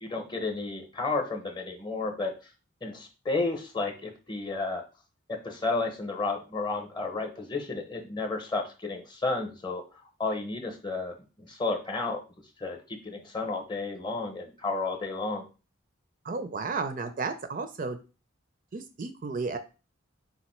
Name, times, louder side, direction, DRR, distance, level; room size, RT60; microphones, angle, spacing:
voice 1, 0.0-2.3 2.8-4.8 5.3-9.8 10.2-12.2 12.6-15.4, left 3 dB, 20° left, 5 dB, 0.7 m, -32 dB
voice 2, 16.2-18.0 18.7-19.6, right 4 dB, 40° right, 9 dB, 0.4 m, -33 dB
4.0 x 2.5 x 4.3 m, 0.32 s
head